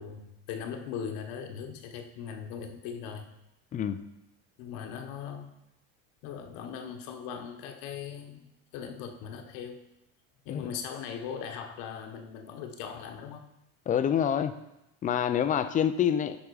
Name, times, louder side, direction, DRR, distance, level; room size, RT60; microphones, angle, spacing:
voice 1, 0.0-3.3 4.6-5.5 6.2-8.5 8.7-9.8 10.4-13.4, left 7 dB, 65° left, 5 dB, 1.1 m, -39 dB
voice 2, 3.7-4.0 10.5-10.7 13.9-14.5 15.0-16.4, left 9 dB, 20° left, 11 dB, 0.4 m, -27 dB
10.5 x 3.7 x 4.8 m, 0.87 s
supercardioid pair, 125°, 38 cm